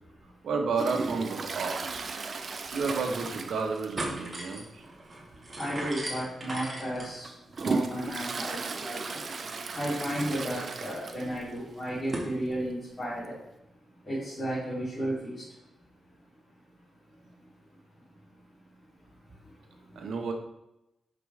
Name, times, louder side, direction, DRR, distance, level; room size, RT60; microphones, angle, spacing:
voice 1, 0.4-2.1 2.7-4.8 19.9-20.3, right 4 dB, 80° right, 3 dB, 1.3 m, -31 dB
Toilet flush, 0.7-4.2 4.5-4.6 5.0-5.1 5.9-6.0 6.6-11.5 11.8-11.9 12.1-12.2 13.2-13.3, right 4 dB, 45° right, 0.6 m, -35 dB
sound 1, 1.9-2.0 2.3-2.4 2.9-3.4 3.7-12.3, right 1 dB, 25° right, 2.0 m, -41 dB
voice 2, 2.2-2.7 4.8-13.5 13.8-15.6 15.9-20.1, equal, 20° left, -12 dB, 3.3 m, -36 dB
10.0 x 6.2 x 3.5 m, 0.89 s
wide cardioid pair, 155°, 0 cm